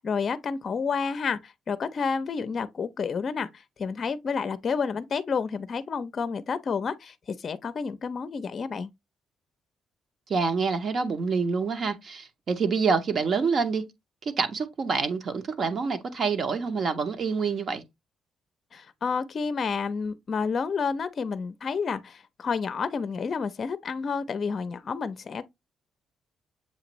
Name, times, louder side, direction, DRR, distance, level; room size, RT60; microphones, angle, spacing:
voice 1, 0.0-8.9 18.7-25.5, left 5 dB, 45° left, 0.5 m, -30 dB
voice 2, 10.3-13.8 14.2-17.8, right 5 dB, 55° right, 0.8 m, -27 dB
7.2 x 2.5 x 3.0 m
cardioid pair, 90°, 0 cm